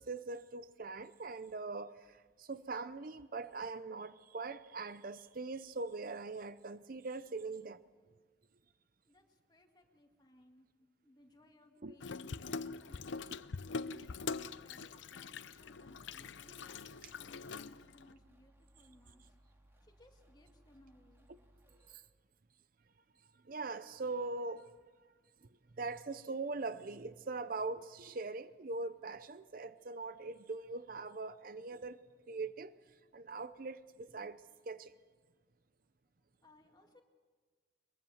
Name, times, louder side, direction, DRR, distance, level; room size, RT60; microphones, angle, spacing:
voice 1, 0.0-7.8 11.8-11.9 13.9-14.0 17.0-17.1 21.9-22.0 23.4-24.7 25.8-32.0 32.3-32.7 33.1-34.4 34.7-34.9, right 3 dB, 50° right, 0.6 m, -42 dB
voice 2, 9.0-10.7 11.0-13.4 13.9-19.4 19.8-21.3 36.4-37.0, left 1 dB, 25° left, 2.2 m, -64 dB
Water tap faucet / Sink (filling or washing), 12.0-18.1, left 4 dB, 85° left, 0.6 m, -43 dB
sound 1, 15.6-22.0, right 1 dB, 15° right, 2.6 m, -66 dB
22.5 x 22.0 x 7.2 m
head